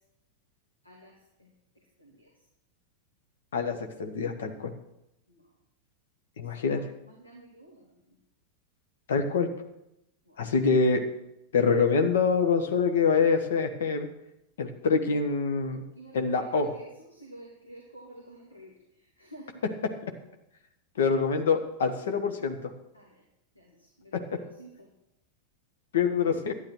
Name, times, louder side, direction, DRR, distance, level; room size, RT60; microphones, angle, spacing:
voice 1, 0.8-1.5 2.0-2.3 5.3-5.4 6.5-8.2 10.3-10.5 15.7-18.7 19.2-19.6 22.9-23.2 23.6-24.7, right 1 dB, 85° left, -2 dB, 2.6 m, -51 dB
voice 2, 3.5-4.7 6.4-6.9 9.1-9.5 10.4-11.0 11.5-14.1 14.6-15.8 16.1-16.7 20.0-20.1 21.0-22.7 24.1-24.2 25.9-26.5, left 5 dB, 60° left, 6 dB, 1.6 m, -25 dB
12.0 x 10.5 x 6.3 m, 0.84 s
figure-of-eight pair, 90°, 0 cm